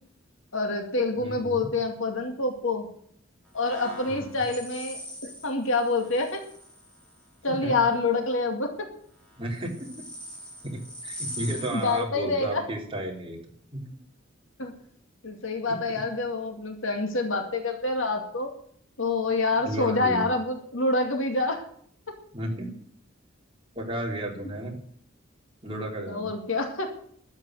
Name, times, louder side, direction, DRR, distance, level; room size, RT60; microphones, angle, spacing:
voice 1, 0.5-2.9 3.5-6.4 7.4-8.9 11.7-12.6 14.6-14.7 15.2-18.5 19.0-21.6 26.1-26.9, left 3 dB, 75° left, 4 dB, 2.3 m, -27 dB
voice 2, 1.2-1.7 4.1-4.4 7.5-7.7 9.4-10.0 10.6-13.4 13.7-13.8 15.7-15.8 19.6-20.3 22.3-22.9 23.8-24.8 25.6-26.3, right 1 dB, 25° right, 0 dB, 3.4 m, -33 dB
sound 1, 3.6-7.2 9.3-12.0, equal, 5° left, 5.2 m, -42 dB
12.5 x 7.4 x 9.3 m, 0.62 s
head